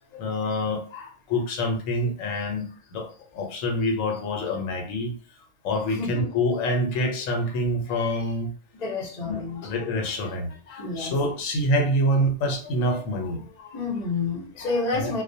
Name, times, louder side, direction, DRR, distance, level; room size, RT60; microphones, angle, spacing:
voice 1, 0.1-2.7 2.9-3.1 3.3-5.1 5.6-8.5 9.2-13.7 14.6-15.1, left 1 dB, 85° left, 1.0 m, -26 dB
voice 2, 6.0-6.3 8.8-9.7 10.8-11.1 13.7-15.2, left 3 dB, 40° left, 0.7 m, -29 dB
2.3 x 2.1 x 2.6 m
omnidirectional pair, 1.3 m